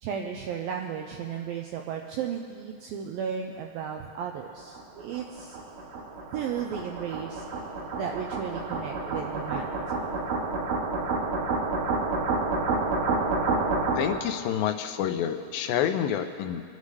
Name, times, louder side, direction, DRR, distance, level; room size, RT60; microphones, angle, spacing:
voice 1, 0.0-5.6 6.3-7.5 8.0-9.8, right 7 dB, 90° right, 2 dB, 2.1 m, -34 dB
sound 1, 4.4-14.3, right 3 dB, 65° right, 2.4 m, -29 dB
voice 2, 14.0-16.6, left 9 dB, 85° left, 6 dB, 2.0 m, -28 dB
27.0 x 9.5 x 3.2 m, 2.2 s
omnidirectional pair, 4.8 m